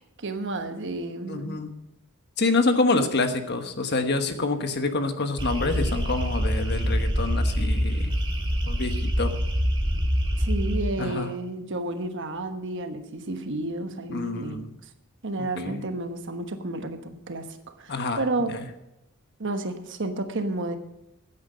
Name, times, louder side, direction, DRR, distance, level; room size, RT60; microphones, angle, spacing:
voice 1, 0.0-1.6 10.4-14.7 15.2-17.5 17.8-18.5 19.4-20.8, right 2 dB, 55° right, 7 dB, 1.2 m, -31 dB
voice 2, 1.3-1.7 2.4-8.1 8.7-9.3 11.0-11.3 14.1-14.7 15.6-15.8 17.9-18.2 18.5-18.6, left 3 dB, 50° left, 7 dB, 1.2 m, -27 dB
sound 1, 5.4-10.8, equal, 25° right, 2.0 m, -25 dB
14.0 x 9.6 x 5.2 m, 0.86 s
head